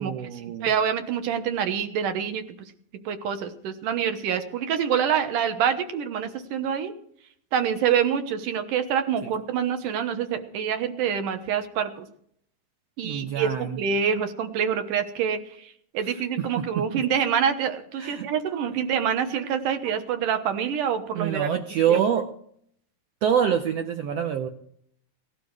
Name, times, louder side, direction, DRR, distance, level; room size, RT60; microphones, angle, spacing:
voice 1, 0.0-0.7 9.2-9.3 13.0-13.8 16.0-17.0 18.0-18.3 21.1-22.3 23.2-24.5, right 8 dB, 85° right, 6 dB, 1.4 m, -26 dB
voice 2, 0.6-2.4 3.1-6.9 7.5-12.1 13.0-15.4 15.9-21.5 21.9-22.0, right 8 dB, 70° right, 8 dB, 2.6 m, -26 dB
18.0 x 12.0 x 4.8 m, 0.66 s
omnidirectional pair, 4.0 m